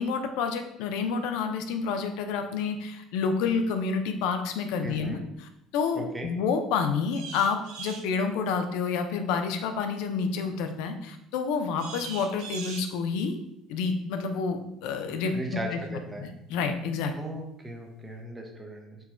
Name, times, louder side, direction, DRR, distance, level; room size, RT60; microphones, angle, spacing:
voice 1, 0.0-13.4 13.7-15.3 15.7-15.8 16.2-17.1, left 5 dB, 85° left, 7 dB, 0.5 m, -29 dB
voice 2, 4.8-5.2 5.9-6.3 15.3-16.3 17.2-19.0, right 1 dB, 15° right, 1 dB, 0.8 m, -37 dB
sound 1, 7.1-8.1 11.8-12.9, right 5 dB, 80° right, 0.6 m, -40 dB
4.5 x 2.3 x 4.4 m, 0.81 s
cardioid pair, 115°, 0 cm